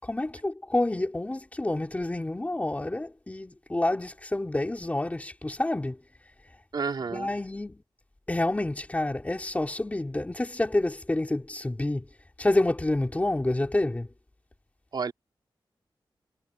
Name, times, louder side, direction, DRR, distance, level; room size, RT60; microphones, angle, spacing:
voice 1, 0.0-6.0 7.1-7.8 8.3-12.1 12.4-14.1, left 2 dB, 15° left, 3.8 m, -28 dB
voice 2, 6.7-7.3 14.9-15.1, right 5 dB, 60° right, 3.2 m, -30 dB
wide cardioid pair, 135°, 9 cm